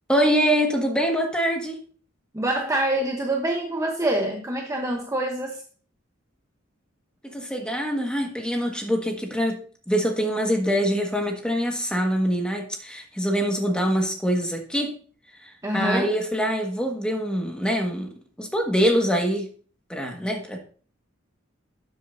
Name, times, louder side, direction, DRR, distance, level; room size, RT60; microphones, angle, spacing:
voice 1, 0.1-1.8 7.2-9.6 9.9-14.9 15.4-18.1 18.4-19.5 19.9-20.6, equal, 5° left, 2 dB, 1.6 m, -24 dB
voice 2, 2.3-5.6 15.6-16.2, right 1 dB, 15° right, 1 dB, 0.9 m, -25 dB
12.5 x 7.7 x 2.7 m, 0.41 s
head